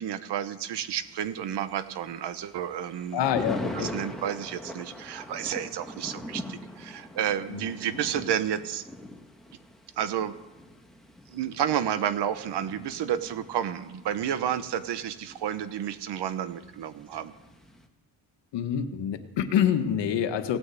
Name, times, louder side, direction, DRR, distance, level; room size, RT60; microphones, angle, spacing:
voice 1, 0.0-8.8 10.0-10.4 11.3-17.3, right 9 dB, 75° right, 12 dB, 1.1 m, -31 dB
Thunder, 0.8-17.9, left 1 dB, ahead, 1.5 m, -42 dB
voice 2, 3.1-3.9 7.5-7.6 18.5-20.6, left 9 dB, 85° left, 8 dB, 1.4 m, -26 dB
17.5 x 9.9 x 8.4 m, 1.1 s
cardioid pair, 125°, 42 cm